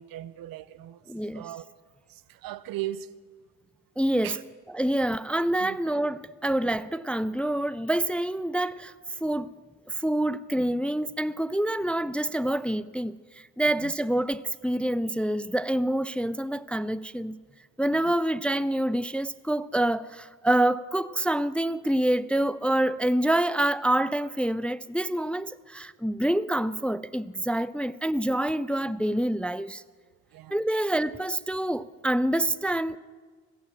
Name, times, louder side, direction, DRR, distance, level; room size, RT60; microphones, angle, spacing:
voice 1, 0.0-1.0 1.3-1.8 2.1-3.1 4.2-4.4 4.8-4.9 5.6-5.8 13.8-13.9 17.9-18.1 30.3-30.6, right 13 dB, 85° right, 0.6 m, -38 dB
voice 2, 1.1-1.4 4.0-4.4 4.7-8.9 9.2-9.5 9.9-17.4 17.8-29.8 30.5-33.0, right 1 dB, 5° left, 0.3 m, -27 dB
16.5 x 8.8 x 7.2 m
cardioid pair, 75°, 34 cm